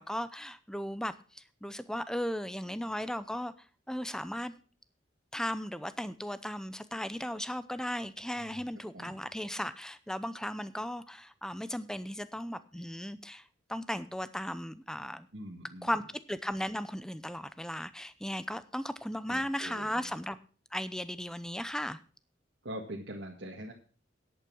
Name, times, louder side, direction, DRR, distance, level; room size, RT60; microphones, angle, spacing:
voice 1, 0.0-3.5 3.9-4.5 5.3-13.4 13.7-15.3 15.8-16.0 16.3-20.4 20.7-22.0, equal, 5° left, 13 dB, 0.6 m, -36 dB
voice 2, 8.4-8.7 8.9-9.2 15.3-16.0 19.3-20.1 22.6-23.7, right 1 dB, 65° right, -2 dB, 1.8 m, -43 dB
10.5 x 8.6 x 6.1 m, 0.40 s
head